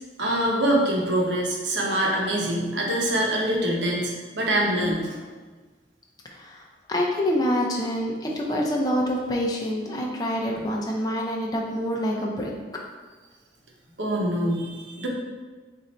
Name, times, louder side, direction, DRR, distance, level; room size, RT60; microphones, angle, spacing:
voice 1, 0.2-5.2 14.0-15.1, right 1 dB, 85° right, -1 dB, 0.9 m, -24 dB
voice 2, 6.3-12.5, equal, 20° left, -1 dB, 0.5 m, -26 dB
4.0 x 2.6 x 4.2 m, 1.4 s
head